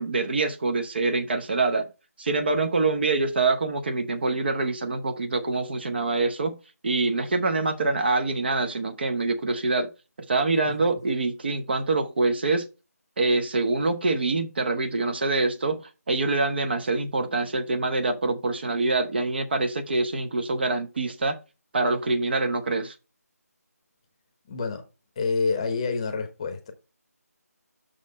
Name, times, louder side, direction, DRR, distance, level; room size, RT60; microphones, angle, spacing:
voice 1, 0.0-1.9 2.2-6.6 6.8-9.9 10.3-12.7 13.2-15.8 16.1-21.4 21.7-22.9, right 3 dB, 40° right, 0.8 m, -25 dB
voice 2, 24.5-24.8 25.2-26.7, left 4 dB, 20° left, 0.9 m, -27 dB
6.3 x 4.1 x 5.3 m
figure-of-eight pair, 165°, 9 cm